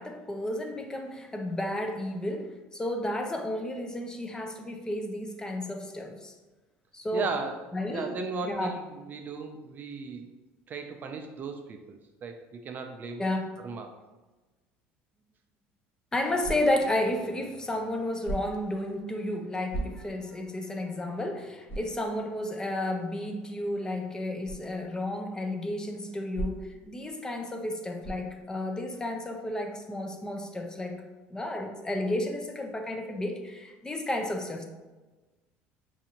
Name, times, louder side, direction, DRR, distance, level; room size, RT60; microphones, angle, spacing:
voice 1, 0.0-6.3 6.9-7.3 7.7-8.1 8.4-8.7 13.2-13.5 16.1-31.0 31.3-34.6, left 1 dB, 15° left, 4 dB, 0.5 m, -32 dB
voice 2, 7.1-10.3 10.7-13.2 13.6-13.9, right 4 dB, 40° right, 5 dB, 0.4 m, -36 dB
sound 1, 16.4-16.9 18.2-18.7 19.7-20.3 20.8-20.9 21.7-22.0 24.4-24.7 26.3-26.8 28.0-28.4, right 2 dB, 45° left, 1.3 m, -36 dB
4.8 x 2.5 x 2.8 m, 1.2 s
supercardioid pair, 100°, 5 cm